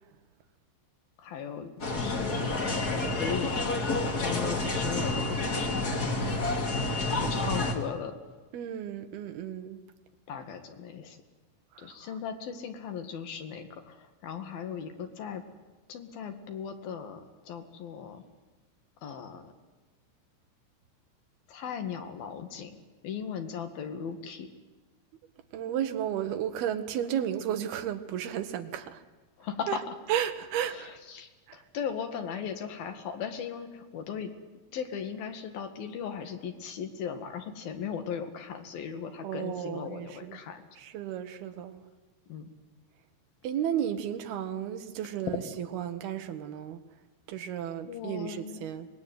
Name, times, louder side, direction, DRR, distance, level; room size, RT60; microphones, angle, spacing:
voice 1, 1.2-2.5 3.1-3.6 4.0-6.4 7.1-8.2 10.3-11.2 11.8-15.4 15.9-18.2 19.0-19.5 21.5-22.8 23.0-24.5 29.4-29.9 30.7-34.3 34.7-40.6 42.3-42.5 47.8-48.7, left 7 dB, 60° left, 3.3 m, -38 dB
sound 1, 1.8-7.7, left 2 dB, 30° left, 1.9 m, -29 dB
voice 2, 8.5-9.8 11.7-12.0 25.5-29.0 29.7-29.8 30.1-31.0 31.5-31.6 39.2-40.4 40.8-41.8 43.4-46.8 47.3-48.9, right 10 dB, 65° right, 2.9 m, -33 dB
25.5 x 19.5 x 9.4 m
omnidirectional pair, 5.5 m